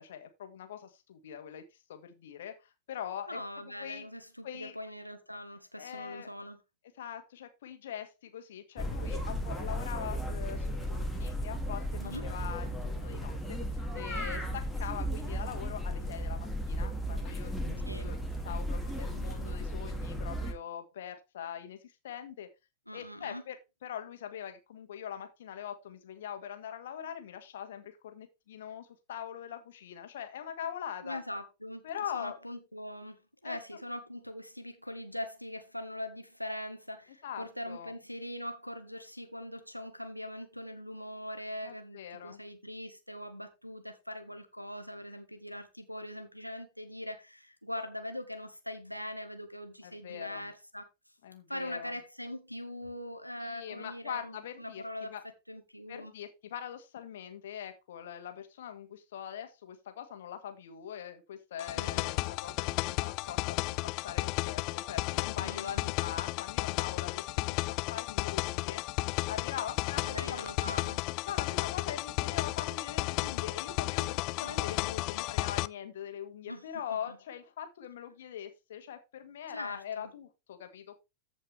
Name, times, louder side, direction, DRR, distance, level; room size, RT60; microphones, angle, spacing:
voice 1, 0.0-1.6 1.9-3.4 3.8-4.0 4.4-4.8 5.8-6.3 7.0-18.2 18.4-22.5 22.9-23.6 23.8-31.2 31.8-32.4 33.4-33.6 37.2-37.9 41.6-42.4 49.8-50.5 51.2-51.9 53.4-54.8 55.1-55.2 55.9-68.8 69.3-70.8 71.2-81.0, left 9 dB, 60° left, 2.0 m, -42 dB
voice 2, 3.3-6.6 12.0-12.3 17.8-18.1 22.9-23.4 31.0-50.8 51.5-55.1 55.5-56.1 61.7-62.1 65.4-65.9 70.0-71.0 74.4-74.8 76.5-77.2 79.5-80.1, left 1 dB, 90° left, 1.6 m, -42 dB
sound 1, 8.8-20.5, equal, ahead, 2.5 m, -35 dB
sound 2, 61.6-75.7, left 21 dB, 40° left, 0.4 m, -33 dB
14.5 x 5.3 x 3.4 m
figure-of-eight pair, 90°, 0 cm